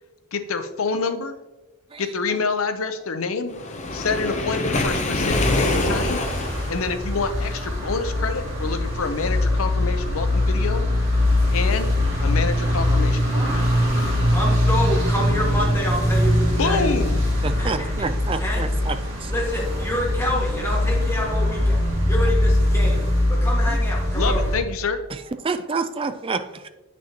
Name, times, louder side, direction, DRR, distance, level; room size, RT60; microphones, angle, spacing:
voice 1, 0.3-1.3 2.0-3.5 3.9-6.2 6.7-10.8 11.5-11.9 12.2-13.5 16.6-17.2 23.7-23.8 24.1-25.0, left 4 dB, 75° left, 9 dB, 0.6 m, -27 dB
Waves surf, 3.5-6.9, left 2 dB, 30° left, 0.7 m, -25 dB
sound 1, 5.3-24.6, left 1 dB, 55° right, 2.2 m, -22 dB
voice 2, 14.3-16.8 17.6-18.1 18.4-18.7 19.3-23.0 23.3-24.4, left 1 dB, 10° left, -4 dB, 1.7 m, -28 dB
voice 3, 17.4-19.0 19.2-19.3 25.4-26.7, right 4 dB, 25° right, 9 dB, 0.3 m, -28 dB
8.5 x 6.1 x 2.9 m, 1.1 s
head